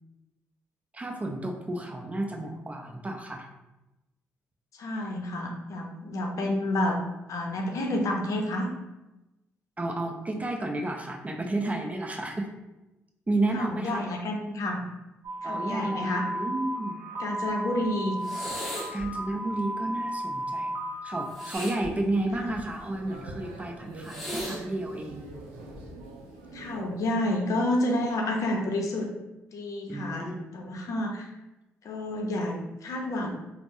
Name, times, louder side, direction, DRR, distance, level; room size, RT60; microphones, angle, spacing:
voice 1, 0.9-3.5 9.8-12.5 13.3-14.1 15.4-17.0 18.9-20.7 21.0-25.3 29.9-30.5, right 2 dB, 20° right, 2 dB, 0.5 m, -32 dB
voice 2, 4.7-7.0 7.3-8.7 13.5-14.8 15.4-16.3 17.2-18.2 22.4-22.5 26.5-29.1 29.5-31.3 31.8-33.3, left 1 dB, 60° left, 1 dB, 0.6 m, -29 dB
sound 1, 15.2-21.3, right 1 dB, 65° right, 0.7 m, -34 dB
sound 2, 18.2-19.1 21.3-22.8 24.0-24.6 25.7-26.0, equal, ahead, 1.0 m, -37 dB
sound 3, 21.5-26.8, right 2 dB, 85° right, 0.4 m, -45 dB
3.4 x 2.0 x 2.6 m, 0.99 s
hypercardioid pair, 45°, 6 cm